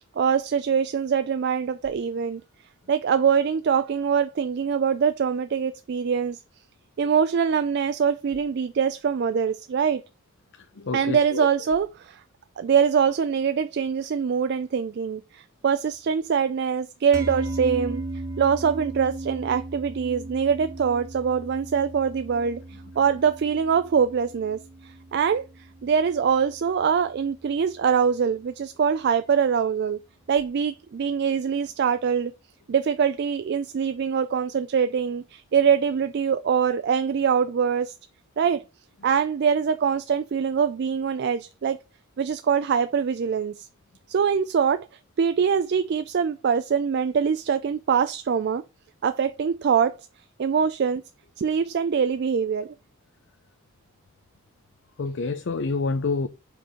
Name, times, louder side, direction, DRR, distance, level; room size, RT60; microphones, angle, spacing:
voice 1, 0.2-2.4 2.9-6.4 7.0-10.0 10.9-12.2 12.6-18.0 18.4-22.6 23.0-25.5 25.8-30.0 30.3-32.3 32.7-37.9 38.4-38.6 39.0-41.8 42.2-43.7 44.1-44.9 45.2-48.6 49.0-50.0 50.4-51.0 51.4-52.7, right 7 dB, 50° right, 0.3 m, -23 dB
voice 2, 10.8-11.5 55.0-56.3, left 3 dB, 55° left, 0.5 m, -27 dB
sound 1, 17.1-27.6, right 2 dB, 15° right, 1.0 m, -37 dB
5.0 x 4.6 x 4.9 m
head